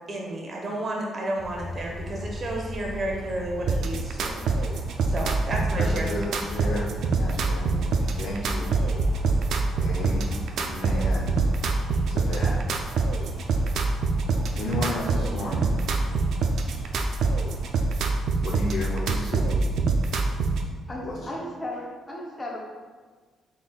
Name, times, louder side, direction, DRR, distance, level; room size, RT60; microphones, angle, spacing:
voice 1, 0.0-6.1, right 1 dB, 40° right, 0 dB, 0.8 m, -32 dB
sound 1, 1.4-17.8, equal, 10° right, 1.4 m, -38 dB
sound 2, 3.7-20.7, right 3 dB, 75° right, 0.3 m, -25 dB
voice 2, 5.8-7.9 8.1-8.7 9.8-11.5 12.1-12.6 14.6-15.7 18.4-19.5 21.0-21.2, left 1 dB, 80° left, -5 dB, 0.6 m, -33 dB
voice 3, 20.9-22.7, left 1 dB, 20° left, -4 dB, 0.6 m, -35 dB
3.9 x 3.6 x 2.3 m, 1.4 s
cardioid pair, 90°, 0 cm